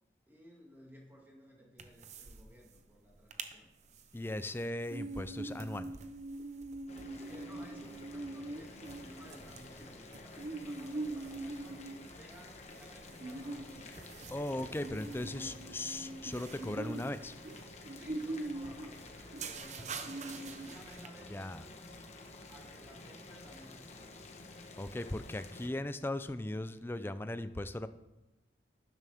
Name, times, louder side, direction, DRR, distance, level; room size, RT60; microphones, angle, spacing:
voice 1, 0.3-3.7 7.2-11.8 12.1-14.0 14.5-15.9 17.9-21.8 22.4-24.2, equal, 10° right, -2 dB, 2.3 m, -57 dB
sound 1, 1.8-2.4 2.7-2.8 3.1-3.5 3.9-21.1, right 2 dB, 40° right, 0.7 m, -43 dB
voice 2, 4.1-5.9 14.3-17.3 21.3-21.6 24.8-27.9, left 1 dB, 10° left, 12 dB, 0.4 m, -38 dB
Boiling, 6.9-25.7, left 2 dB, 35° left, 1.2 m, -51 dB
12.5 x 10.5 x 3.5 m, 1.0 s
head